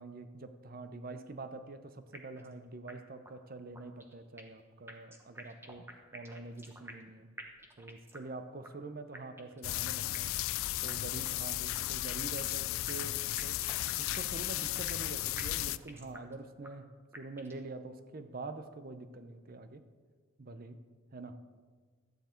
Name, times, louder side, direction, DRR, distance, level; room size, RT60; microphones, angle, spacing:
voice 1, 0.0-5.9 6.1-7.3 7.8-10.3 10.8-13.6 14.0-16.9 17.2-19.8 20.4-20.8 21.1-21.4, right 3 dB, 45° right, 10 dB, 0.7 m, -45 dB
sound 1, 2.1-2.5 2.9-3.0 3.2-3.3 3.7-4.6 4.9-7.1 7.4-8.3 8.6-8.7 9.1-9.6 10.1-10.5 10.9-11.0 11.2-11.3 11.7-12.6 12.9-15.1 15.4-16.3 16.6-16.7 17.1-17.6, right 1 dB, 10° right, 1.0 m, -50 dB
sound 2, 9.6-15.8, left 16 dB, 75° left, 0.3 m, -35 dB
13.0 x 9.4 x 4.4 m, 1.5 s
head